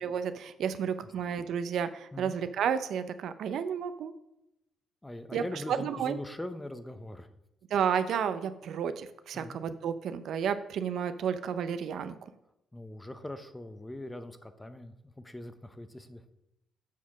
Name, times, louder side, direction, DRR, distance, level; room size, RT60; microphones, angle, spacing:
voice 1, 0.0-4.1 5.3-5.4 5.7-6.2 7.7-12.1, right 7 dB, 70° right, 11 dB, 0.5 m, -31 dB
voice 2, 5.0-7.3 9.3-9.6 12.7-16.2, left 1 dB, 10° left, 10 dB, 0.7 m, -42 dB
7.2 x 4.3 x 6.0 m, 0.87 s
cardioid pair, 90°, 0 cm